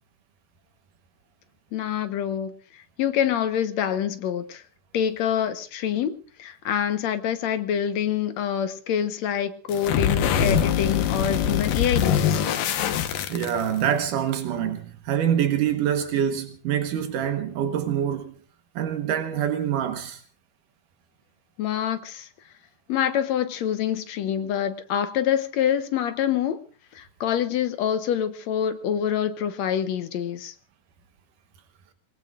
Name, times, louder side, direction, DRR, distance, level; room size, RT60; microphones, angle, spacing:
voice 1, 1.7-2.5 3.0-4.6 4.9-6.1 6.4-12.4 21.6-22.3 22.9-26.6 26.9-30.5, left 9 dB, 65° left, 2.1 m, -26 dB
sound 1, 9.7-13.9, left 8 dB, 90° left, 2.8 m, -23 dB
voice 2, 13.3-18.3 18.8-20.2, right 9 dB, 80° right, 2.8 m, -25 dB
27.5 x 19.5 x 2.5 m
omnidirectional pair, 3.7 m